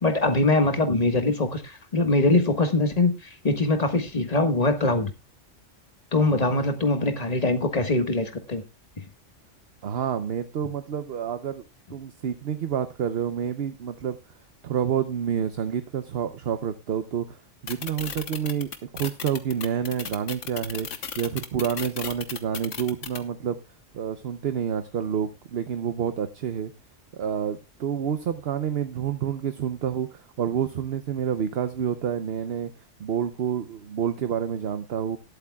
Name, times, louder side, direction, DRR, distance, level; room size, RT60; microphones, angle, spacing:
voice 1, 0.0-5.1 6.1-8.6, left 2 dB, 30° left, 1.6 m, -23 dB
voice 2, 9.8-11.7 11.9-14.2 14.6-20.9 21.2-23.6 23.9-26.7 27.1-32.7 33.0-35.2, right 8 dB, 60° right, 0.9 m, -28 dB
sound 1, 17.7-23.2, left 7 dB, 90° left, 1.5 m, -34 dB
19.5 x 8.3 x 2.3 m
omnidirectional pair, 1.2 m